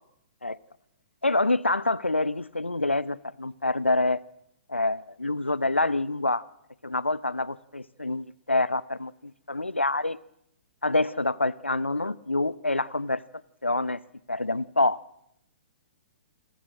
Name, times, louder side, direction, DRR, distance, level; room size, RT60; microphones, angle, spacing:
voice 1, 1.2-4.2 4.7-6.4 6.8-10.2 10.8-13.2 13.6-14.0 14.3-15.0, left 2 dB, 90° left, 0.8 m, -26 dB
28.5 x 13.0 x 7.6 m
figure-of-eight pair, 120°, 6 cm